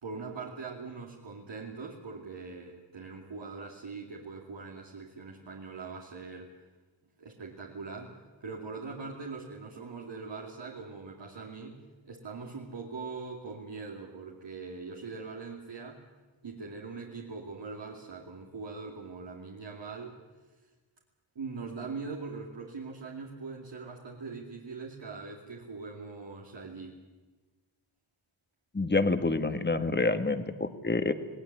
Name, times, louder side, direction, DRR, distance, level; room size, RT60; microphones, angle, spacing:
voice 1, 0.0-6.5 7.2-8.1 8.4-11.8 12.0-16.0 16.4-20.2 21.3-27.0, right 4 dB, 60° right, -1 dB, 2.7 m, -42 dB
voice 2, 28.7-31.1, left 3 dB, 20° left, 9 dB, 1.8 m, -27 dB
19.5 x 18.0 x 9.7 m, 1.2 s
cardioid pair, 55°, 49 cm